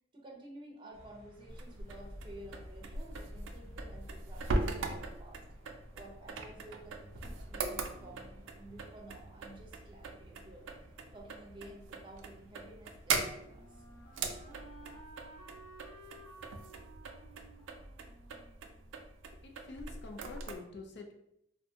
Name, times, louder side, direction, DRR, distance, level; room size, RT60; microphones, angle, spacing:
voice 1, 0.1-5.4 5.9-8.2 8.5-10.7 11.1-13.7, right 1 dB, 25° right, -1 dB, 0.5 m, -52 dB
sound 1, 0.9-15.0, equal, 15° left, 0.9 m, -55 dB
sound 2, 1.5-20.6, right 3 dB, 80° right, 0.3 m, -41 dB
Wind instrument woodwind instrument, 12.7-19.5, right 2 dB, 85° left, 1.2 m, -56 dB
voice 2, 19.3-21.1, left 3 dB, 65° left, 3 dB, 0.4 m, -47 dB
2.6 x 2.1 x 2.7 m, 0.78 s
head